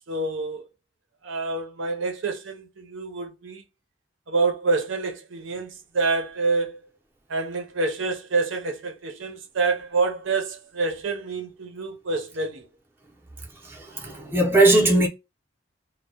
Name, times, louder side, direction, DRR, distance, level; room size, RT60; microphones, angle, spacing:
voice 1, 0.1-0.7 1.2-3.6 4.3-6.8 7.3-12.7, right 3 dB, 80° right, 0.6 m, -27 dB
voice 2, 13.6-15.1, right 2 dB, 10° right, 0.5 m, -19 dB
2.1 x 2.1 x 2.7 m
head